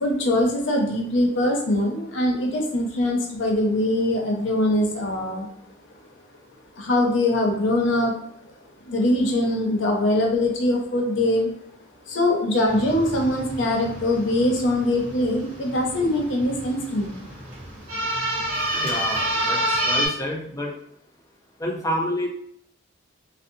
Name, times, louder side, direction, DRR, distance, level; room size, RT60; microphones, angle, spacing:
voice 1, 0.0-5.5 6.8-8.2 8.9-11.5 12.1-17.3, left 1 dB, 70° left, 1 dB, 0.6 m, -22 dB
sound 1, 12.7-20.1, right 1 dB, 45° right, 1.1 m, -29 dB
voice 2, 18.8-20.7 21.6-22.3, left 1 dB, 15° left, -1 dB, 0.4 m, -28 dB
2.7 x 2.0 x 2.5 m, 0.69 s
head